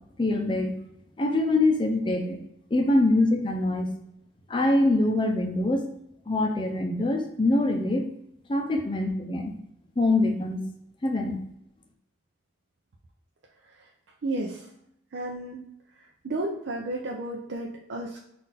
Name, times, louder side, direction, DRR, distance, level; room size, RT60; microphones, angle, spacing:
voice 1, 0.2-0.7 1.2-2.4 2.7-3.9 4.5-5.9 6.3-8.1 8.5-9.5 10.0-10.6 11.0-11.4, left 2 dB, 25° left, 3 dB, 0.5 m, -24 dB
voice 2, 14.2-14.7 15.1-15.6 16.2-18.2, right 2 dB, 80° right, -1 dB, 0.5 m, -32 dB
3.9 x 2.5 x 4.0 m, 0.77 s
head